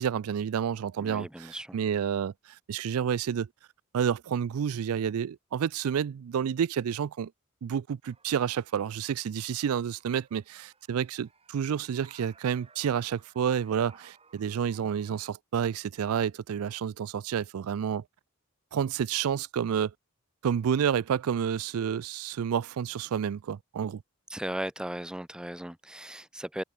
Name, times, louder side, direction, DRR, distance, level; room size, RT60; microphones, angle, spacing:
voice 1, 0.0-2.3 2.7-3.5 3.9-7.3 7.6-18.0 18.7-19.9 20.4-24.0, right 8 dB, 80° right, 0.4 m, -29 dB
voice 2, 1.0-1.8 24.3-26.6, right 1 dB, 5° right, 0.5 m, -37 dB
sound 1, 8.1-15.3, right 5 dB, 25° right, 2.7 m, -60 dB
head